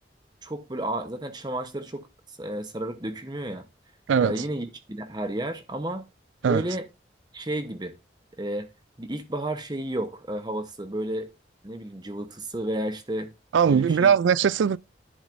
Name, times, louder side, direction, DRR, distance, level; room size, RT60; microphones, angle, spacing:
voice 1, 0.4-2.1 2.4-3.7 4.2-6.1 6.4-6.8 7.3-7.9 8.4-8.7 9.0-11.3 11.6-13.3 13.6-14.1, right 1 dB, 25° right, 1.0 m, -32 dB
voice 2, 4.1-4.4 6.4-6.6 13.5-14.8, right 7 dB, 85° right, 0.4 m, -20 dB
10.5 x 8.3 x 2.6 m
head